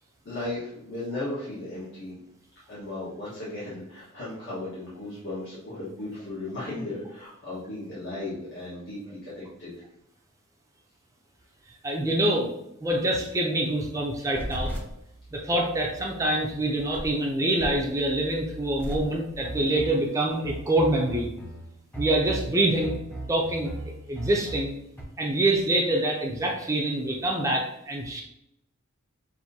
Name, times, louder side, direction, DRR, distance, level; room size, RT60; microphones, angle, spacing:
voice 1, 0.2-2.2 2.7-9.7 24.1-24.2, left 2 dB, 55° left, -9 dB, 1.3 m, -36 dB
voice 2, 11.8-12.5 12.8-14.7 15.3-21.3 22.0-23.0 23.3-24.7 25.2-28.2, right 1 dB, 15° right, 0 dB, 0.5 m, -25 dB
sound 1, 14.3-25.0, right 1 dB, 10° left, 1.0 m, -38 dB
5.9 x 2.7 x 2.7 m, 0.81 s
head